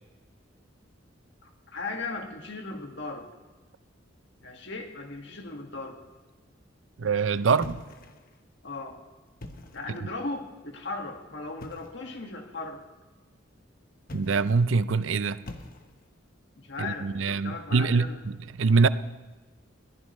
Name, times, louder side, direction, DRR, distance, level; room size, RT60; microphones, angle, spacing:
voice 1, 1.4-3.3 4.4-6.0 8.6-9.0 9.7-12.8 16.6-18.2, left 3 dB, 65° left, 3 dB, 1.9 m, -37 dB
voice 2, 7.0-7.8 9.9-10.0 14.1-15.4 16.8-18.9, right 4 dB, 80° right, 15 dB, 0.5 m, -24 dB
sound 1, 7.6-8.4 9.3-10.0 11.6-12.0 14.0-14.7 15.4-16.2, left 1 dB, 50° left, 1.2 m, -44 dB
21.0 x 15.0 x 3.2 m, 1.2 s
head